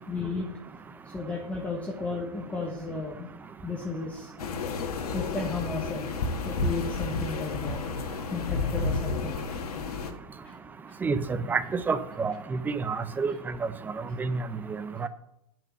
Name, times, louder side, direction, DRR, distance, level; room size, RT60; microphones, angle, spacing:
voice 1, 0.1-0.5 1.1-3.3 3.6-4.3 5.1-6.2 6.4-7.8 8.3-9.4 10.4-10.5, left 3 dB, 5° left, -1 dB, 1.2 m, -34 dB
sound 1, 4.4-10.1, left 4 dB, 80° left, 1.6 m, -31 dB
voice 2, 11.0-13.3 14.2-14.4 15.0-15.1, right 4 dB, 10° right, 13 dB, 0.5 m, -28 dB
8.9 x 6.1 x 7.2 m, 0.80 s
hypercardioid pair, 145°, 19 cm